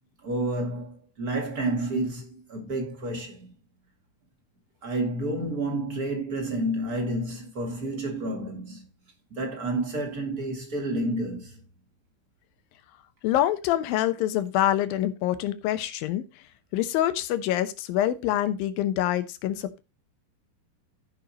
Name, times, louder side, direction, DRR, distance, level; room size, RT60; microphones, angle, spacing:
voice 1, 0.2-3.5 4.8-8.9 9.3-11.6, right 1 dB, 30° right, 2.1 m, -30 dB
voice 2, 13.2-16.2 16.7-19.8, left 12 dB, 80° left, 2.6 m, -26 dB
15.0 x 5.5 x 2.8 m
omnidirectional pair, 4.2 m